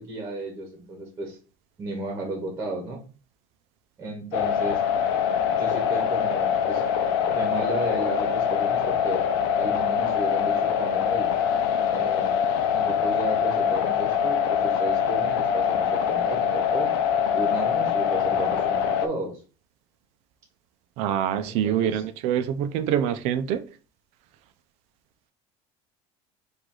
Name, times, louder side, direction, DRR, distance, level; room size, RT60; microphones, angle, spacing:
voice 1, 0.0-1.4 1.8-3.0 4.0-4.8 5.6-6.9 7.2-9.2 9.6-11.3 11.9-12.3 12.7-16.9 17.3-19.4 21.3-22.0, right 1 dB, 20° right, 1.1 m, -33 dB
sound 1, 4.3-19.1, left 8 dB, 90° left, 0.6 m, -24 dB
voice 2, 21.0-23.6, right 10 dB, 55° right, 0.5 m, -25 dB
4.8 x 2.6 x 3.8 m
cardioid pair, 175°, 13 cm